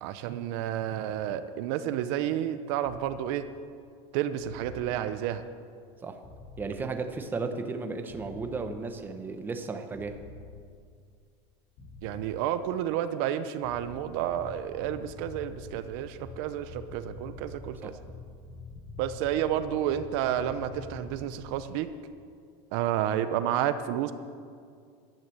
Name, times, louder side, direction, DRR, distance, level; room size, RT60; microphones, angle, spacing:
voice 1, 0.0-3.4 4.1-5.4 12.0-17.9 19.0-21.9 22.7-24.1, right 11 dB, 60° right, 11 dB, 0.8 m, -30 dB
sound 1, 2.8-3.0 4.4-4.8 6.2-6.7 8.1-8.6 9.9-10.4 11.8-12.3 13.6-21.5, left 4 dB, 55° left, 5.2 m, -45 dB
voice 2, 6.6-10.2 17.8-18.0, right 4 dB, 15° right, 6 dB, 0.9 m, -34 dB
14.0 x 12.0 x 7.8 m, 2.2 s
cardioid pair, 165°, 14 cm